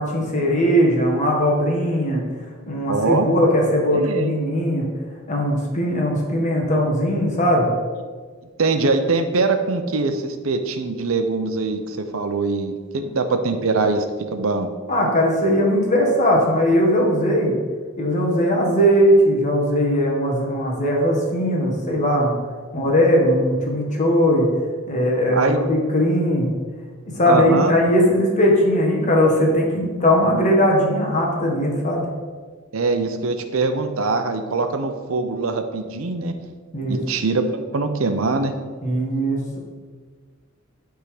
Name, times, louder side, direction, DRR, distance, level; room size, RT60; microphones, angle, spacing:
voice 1, 0.0-2.2 2.7-4.9 5.3-7.7 14.9-17.5 18.0-22.3 22.7-24.5 24.9-26.5 27.1-32.0 36.7-37.0 38.8-39.6, equal, 35° left, -1 dB, 1.4 m, -19 dB
voice 2, 2.9-3.3 3.9-4.3 8.6-14.0 14.3-14.7 25.3-25.6 27.3-27.7 32.7-36.3 36.9-38.5, right 3 dB, 85° right, 7 dB, 0.7 m, -22 dB
9.4 x 3.8 x 4.9 m, 1.5 s
head